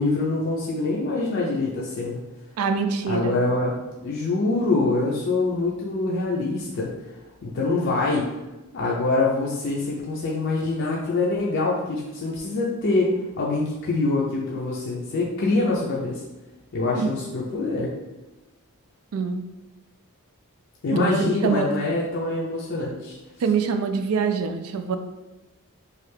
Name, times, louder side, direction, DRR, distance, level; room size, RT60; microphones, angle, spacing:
voice 1, 0.0-2.2 3.1-3.7 4.0-6.9 7.4-8.3 8.7-16.2 16.7-17.9 20.8-23.2, left 3 dB, 55° left, -4 dB, 0.5 m, -24 dB
voice 2, 2.6-3.4 16.9-17.1 19.1-19.4 20.9-21.7 23.4-25.0, right 5 dB, 75° right, 8 dB, 0.3 m, -24 dB
3.2 x 2.4 x 3.3 m, 1.1 s
head